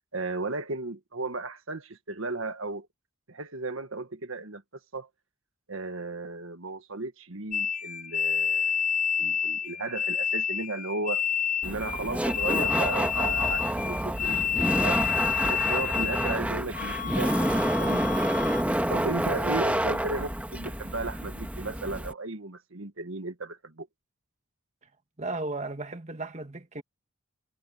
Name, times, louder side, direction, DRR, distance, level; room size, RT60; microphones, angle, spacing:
voice 1, 0.1-2.9 3.3-4.6 4.9-5.1 5.7-8.9 9.2-11.3 11.6-15.0 15.4-18.3 18.9-23.9, right 3 dB, 70° right, 1.6 m, -35 dB
sound 1, 7.5-16.4 16.7-18.6, left 8 dB, 35° left, 0.6 m, -29 dB
Laughter, 11.6-22.1, right 1 dB, 5° right, 1.6 m, -28 dB
voice 2, 25.2-26.8, right 2 dB, 30° right, 1.6 m, -35 dB
head